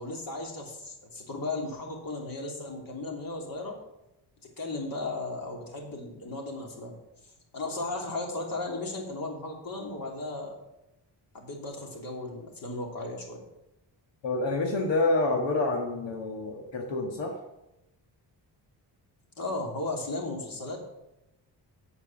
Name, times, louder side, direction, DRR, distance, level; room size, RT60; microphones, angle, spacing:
voice 1, 0.0-3.8 4.6-6.9 7.5-10.6 11.3-13.4 19.4-20.8, left 2 dB, 50° left, 0 dB, 3.2 m, -35 dB
voice 2, 14.2-17.4, left 2 dB, 85° left, 1 dB, 1.7 m, -28 dB
9.0 x 8.6 x 7.2 m, 0.91 s
wide cardioid pair, 130°, 43 cm